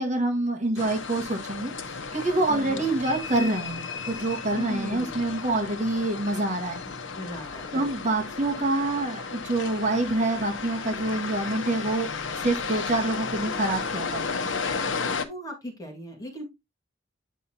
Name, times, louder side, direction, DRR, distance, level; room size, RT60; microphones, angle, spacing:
voice 1, 0.0-6.8 7.7-12.1 12.4-14.3, right 2 dB, 40° right, 4 dB, 1.7 m, -26 dB
sound 1, 0.8-15.2, left 5 dB, 80° left, 0.9 m, -34 dB
voice 2, 2.5-2.8 4.5-5.2 7.2-7.9 15.2-16.5, equal, 20° left, 1 dB, 2.0 m, -37 dB
9.3 x 5.5 x 2.8 m, 0.21 s
head